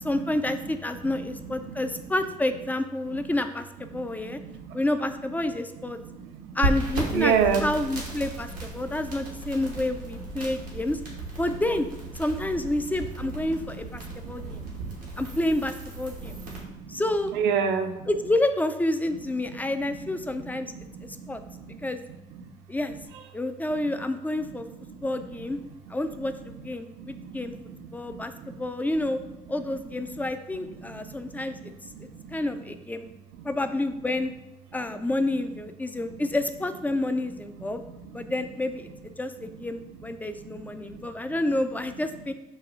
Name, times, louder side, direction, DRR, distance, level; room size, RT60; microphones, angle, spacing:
voice 1, 0.0-4.4 4.7-6.0 6.5-11.0 11.4-11.9 12.2-14.6 15.2-16.4 16.9-17.3 18.1-20.7 21.0-21.4 21.8-22.0 22.7-23.0 23.3-24.7 25.0-25.6 25.9-27.5 27.9-29.2 29.5-31.7 32.3-33.0 33.4-34.3 34.7-37.8 38.1-42.3, left 1 dB, 10° left, 9 dB, 0.3 m, -29 dB
voice 2, 3.9-4.8 6.0-6.6 7.1-7.6 8.8-9.0 13.4-15.1 16.2-17.0 17.3-18.1 19.6-20.4 20.7-21.9 22.3-22.5 24.9-25.2 26.1-26.2 26.9-28.6 30.8-32.4 33.4-33.5 37.9-38.2 39.5-39.6 40.4-41.1, right 7 dB, 65° right, 6 dB, 0.5 m, -32 dB
sound 1, 6.6-16.6, right 2 dB, 85° right, 0.8 m, -35 dB
6.9 x 2.3 x 2.4 m, 0.98 s
figure-of-eight pair, 45°, 20 cm